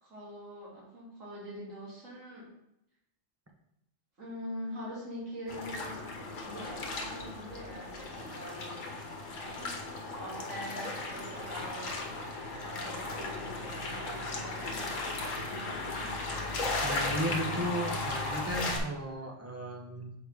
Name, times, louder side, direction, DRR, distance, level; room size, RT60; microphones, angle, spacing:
voice 1, 0.0-2.4 4.2-6.1 6.4-8.9 9.4-12.1 12.6-14.7 15.5-16.2, equal, 85° right, -7 dB, 2.9 m, -44 dB
sound 1, 5.5-18.8, left 2 dB, 85° left, 1.4 m, -36 dB
voice 2, 16.8-20.1, equal, 15° right, 1 dB, 0.7 m, -35 dB
7.0 x 4.7 x 3.5 m, 0.84 s
omnidirectional pair, 1.3 m